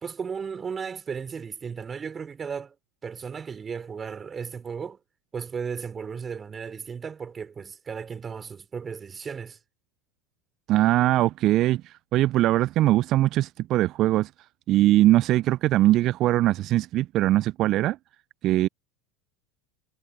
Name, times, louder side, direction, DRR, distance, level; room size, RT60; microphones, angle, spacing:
voice 1, 0.0-2.7 3.0-5.0 5.3-9.6, right 6 dB, 25° right, 3.9 m, -35 dB
voice 2, 10.7-14.3 14.7-18.0 18.4-18.7, right 15 dB, 50° right, 0.3 m, -21 dB
hypercardioid pair, 80°, 0 cm